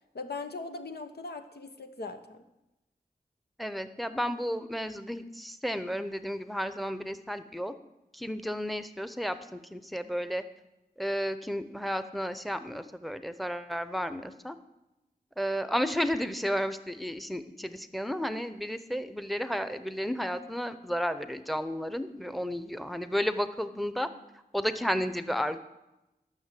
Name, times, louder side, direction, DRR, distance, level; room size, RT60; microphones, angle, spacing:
voice 1, 0.1-2.4, left 3 dB, 85° left, 6 dB, 1.0 m, -39 dB
voice 2, 3.6-7.7 8.1-10.4 11.0-14.6 15.4-24.1 24.5-25.6, equal, ahead, 11 dB, 0.7 m, -32 dB
12.5 x 6.3 x 7.6 m, 0.96 s
wide cardioid pair, 65°, 16 cm